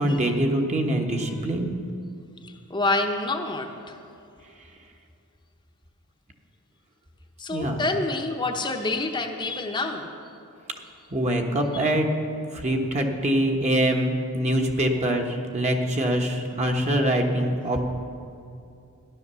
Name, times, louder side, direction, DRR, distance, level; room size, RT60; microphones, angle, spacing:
voice 1, 0.0-1.7 7.5-7.8 11.1-12.1 12.5-17.8, right 1 dB, 30° right, 2 dB, 1.3 m, -24 dB
voice 2, 2.4-4.0 7.4-10.1 11.8-11.9, left 2 dB, 20° left, 2 dB, 0.9 m, -27 dB
14.5 x 11.0 x 6.9 m, 2.6 s
head